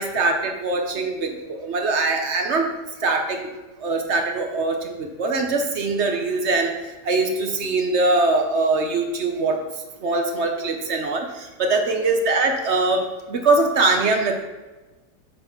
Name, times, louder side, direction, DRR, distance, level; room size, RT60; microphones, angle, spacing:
voice 1, 0.0-2.7 3.0-3.5 3.8-6.7 7.0-9.6 10.0-14.4, right 3 dB, 50° right, 4 dB, 0.9 m, -22 dB
7.7 x 4.1 x 5.8 m, 1.2 s
omnidirectional pair, 1.8 m